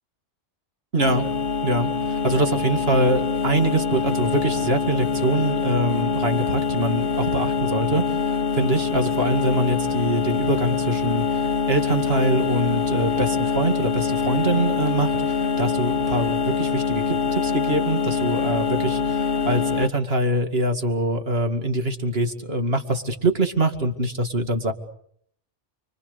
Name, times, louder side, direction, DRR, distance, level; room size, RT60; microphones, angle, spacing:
voice 1, 0.9-1.3 1.6-24.7, right 1 dB, 55° right, 6 dB, 2.6 m, -24 dB
sound 1, 1.0-19.9, left 5 dB, 50° left, 1.4 m, -24 dB
30.0 x 23.5 x 6.9 m, 0.67 s
omnidirectional pair, 1.2 m